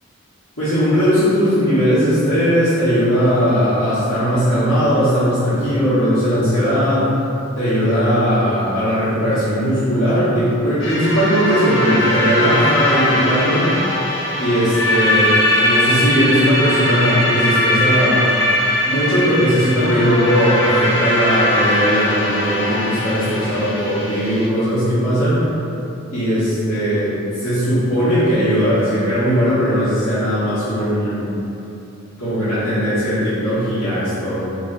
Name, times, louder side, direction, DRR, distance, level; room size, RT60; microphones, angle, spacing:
voice 1, 0.6-7.1 7.6-13.8 14.4-18.4 18.8-25.4 26.1-31.3 32.2-34.5, equal, 80° left, -16 dB, 1.2 m, -18 dB
sound 1, 10.8-24.5, left 1 dB, 60° left, 0.6 m, -20 dB
3.1 x 2.9 x 3.9 m, 2.9 s
head